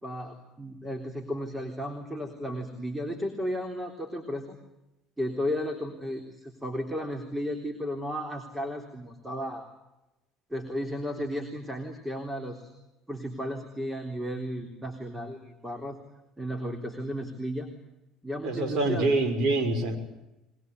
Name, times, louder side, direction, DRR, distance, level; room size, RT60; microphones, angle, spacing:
voice 1, 0.0-4.6 5.2-9.7 10.5-12.7 13.1-16.0 16.4-17.7 18.2-19.1, equal, 10° right, 5 dB, 3.8 m, -34 dB
voice 2, 18.4-20.0, right 2 dB, 50° right, 5 dB, 6.0 m, -25 dB
23.0 x 21.5 x 8.2 m, 0.97 s
supercardioid pair, 80°, 0 cm